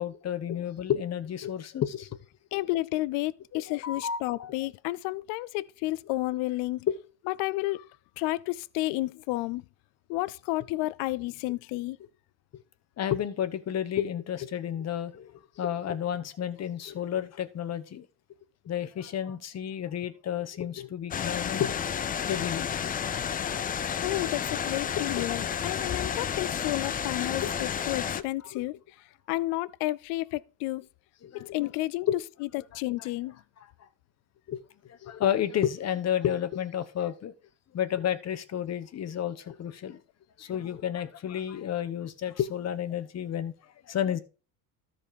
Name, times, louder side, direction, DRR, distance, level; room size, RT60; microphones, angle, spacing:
voice 1, 0.0-2.2 3.5-4.5 6.9-7.0 12.5-12.6 13.0-18.1 18.6-24.0 25.0-25.2 27.4-27.5 28.4-28.6 31.2-31.7 32.1-32.2 33.0-33.1 33.6-33.9 34.5-37.3 37.7-40.0 40.4-44.2, left 10 dB, 35° left, 1.1 m, -32 dB
voice 2, 2.5-6.9 7.3-7.9 8.2-9.6 10.1-12.0 24.0-28.8 29.3-30.9 31.3-32.1 32.5-33.4, left 19 dB, 75° left, 0.6 m, -31 dB
sound 1, 21.1-28.2, left 8 dB, 20° left, 0.4 m, -31 dB
13.0 x 4.4 x 5.1 m
cardioid pair, 120°, 43 cm